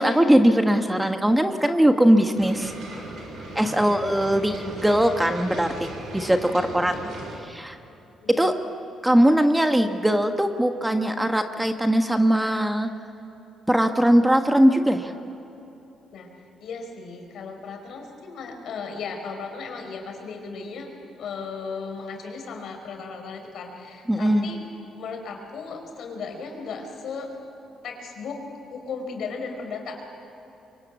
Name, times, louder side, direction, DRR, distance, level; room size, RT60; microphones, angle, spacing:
voice 1, 0.0-2.7 3.5-6.9 7.4-7.8 8.3-8.5 9.0-12.9 13.7-15.1 24.1-24.5, equal, 10° right, 6 dB, 1.5 m, -20 dB
sound 1, 2.3-7.4, right 2 dB, 75° right, 7.2 m, -38 dB
voice 2, 3.7-4.1 6.5-7.3 8.2-8.5 16.1-16.3 16.6-24.6 25.0-27.3 27.8-28.4 28.7-30.0, left 5 dB, 70° left, 4 dB, 5.1 m, -36 dB
24.5 x 24.0 x 8.4 m, 3.0 s
cardioid pair, 90°, 0 cm